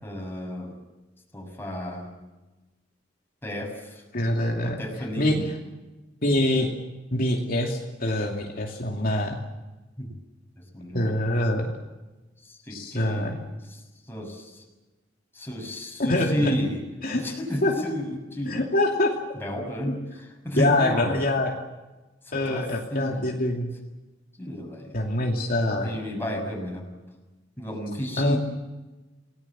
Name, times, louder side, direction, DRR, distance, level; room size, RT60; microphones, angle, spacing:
voice 1, 0.0-0.7 1.3-2.1 3.4-4.0 4.6-5.5 10.0-10.1 10.7-11.1 12.4-13.4 13.7-13.8 14.1-14.6 15.3-16.8 17.1-18.7 19.3-21.2 22.3-23.3 24.4-24.9 25.7-26.9 27.6-28.4, equal, 10° left, 1 dB, 6.6 m, -32 dB
voice 2, 4.1-4.8 5.2-5.5 6.2-6.7 7.1-9.4 10.9-11.7 12.7-13.3 16.0-16.5 17.0-17.2 17.6-17.7 18.4-19.1 19.9-20.0 20.6-21.5 22.3-23.7 24.9-26.0 28.2-28.4, left 1 dB, 50° left, 0 dB, 2.8 m, -25 dB
29.0 x 19.0 x 7.6 m, 1.1 s
head